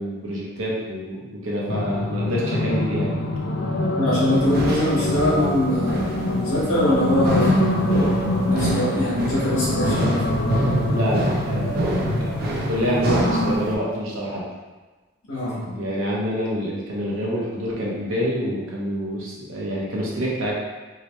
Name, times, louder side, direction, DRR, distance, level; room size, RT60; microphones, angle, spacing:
voice 1, 0.0-3.2 10.9-14.4 15.7-20.5, equal, 80° right, -5 dB, 0.8 m, -27 dB
sound 1, 1.7-13.6, left 1 dB, 50° left, 0.4 m, -24 dB
voice 2, 4.0-7.6 8.5-10.3 11.9-12.1 15.3-15.9, left 1 dB, 80° left, -8 dB, 1.0 m, -23 dB
sound 2, 4.3-13.8, right 1 dB, 45° right, 0.5 m, -29 dB
3.2 x 2.9 x 3.0 m, 1.2 s
head